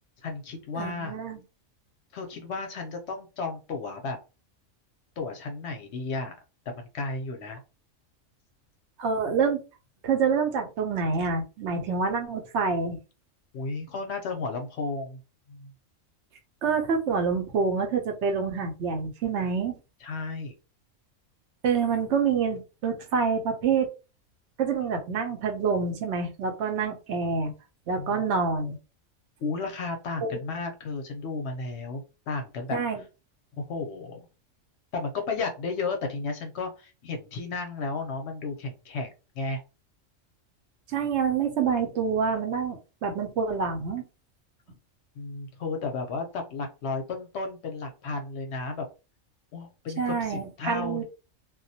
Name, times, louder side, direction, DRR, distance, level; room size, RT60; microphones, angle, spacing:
voice 1, 0.2-1.2 2.1-4.2 5.2-6.3 6.8-7.6 13.5-15.2 15.5-15.7 20.0-20.5 28.0-28.2 29.4-33.0 33.6-34.2 34.9-39.6 45.2-48.9 49.5-51.0, left 3 dB, 65° left, 3 dB, 0.8 m, -33 dB
voice 2, 0.8-1.4 9.0-9.6 10.0-13.0 16.6-19.8 21.6-23.9 24.6-27.5 27.9-28.8 30.2-30.4 32.7-33.0 40.9-44.0 50.0-51.0, right 5 dB, 70° right, 5 dB, 0.8 m, -27 dB
2.3 x 2.1 x 2.6 m, 0.30 s
omnidirectional pair, 1.3 m